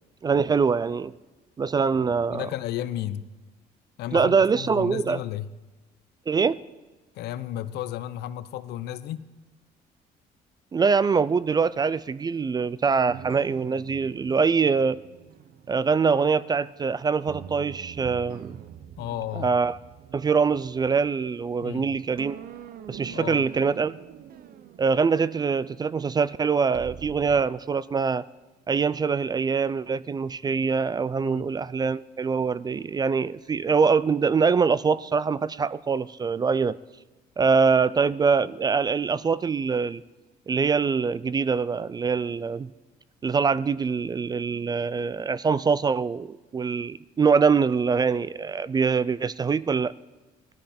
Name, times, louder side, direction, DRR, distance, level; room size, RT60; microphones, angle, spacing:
voice 1, 0.2-1.1 1.6-2.4 4.1-5.2 6.3-6.6 10.7-15.0 15.7-18.6 19.4-19.8 20.1-22.4 22.9-23.9 24.8-28.2 28.7-36.8 37.4-40.0 40.5-42.7 43.2-49.9, right 5 dB, 25° right, 18 dB, 0.3 m, -24 dB
voice 2, 2.3-3.3 4.0-5.5 7.1-9.3 19.0-19.5 21.6-22.0 23.1-23.4 31.2-31.5, left 12 dB, 75° left, 13 dB, 0.7 m, -33 dB
sound 1, 13.1-16.8 17.3-21.8 22.2-27.4, right 9 dB, 60° right, 0.7 m, -44 dB
17.5 x 13.0 x 4.3 m, 1.2 s
cardioid pair, 110°, 17 cm